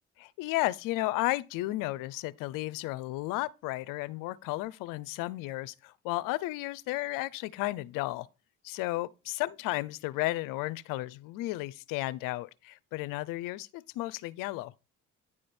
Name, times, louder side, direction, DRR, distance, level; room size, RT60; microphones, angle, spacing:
voice 1, 0.2-8.3 8.6-14.7, left 18 dB, 80° left, 0.5 m, -33 dB
9.9 x 4.9 x 4.3 m
supercardioid pair, 75°, 32 cm